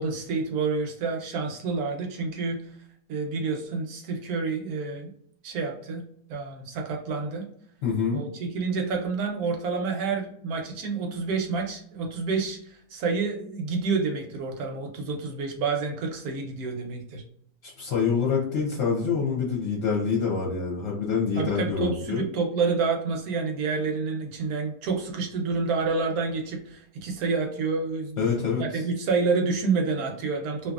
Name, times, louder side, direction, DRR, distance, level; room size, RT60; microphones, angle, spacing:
voice 1, 0.0-2.6 3.1-5.1 5.4-6.0 6.3-7.5 8.1-17.2 21.4-30.7, right 4 dB, 70° right, 2 dB, 1.1 m, -28 dB
voice 2, 7.8-8.2 17.6-22.2 28.2-28.6, left 5 dB, 55° left, -3 dB, 0.9 m, -26 dB
2.8 x 2.6 x 2.3 m, 0.65 s
omnidirectional pair, 1.7 m